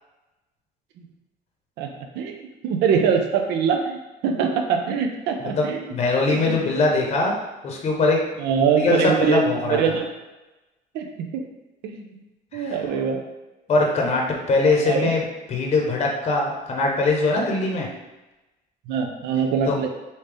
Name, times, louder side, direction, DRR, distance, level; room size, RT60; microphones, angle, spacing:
voice 1, 1.8-5.8 6.3-6.7 8.4-10.1 10.9-11.4 11.8-12.0 12.5-13.2 14.8-15.1 18.9-19.9, right 6 dB, 80° right, 4 dB, 0.5 m, -23 dB
voice 2, 5.4-7.3 7.6-8.2 8.8-9.8 12.5-12.8 13.7-15.2 15.5-17.9 19.7-19.8, left 3 dB, 40° left, 0 dB, 0.7 m, -21 dB
3.4 x 2.7 x 3.3 m, 1.1 s
cardioid pair, 110°, 17 cm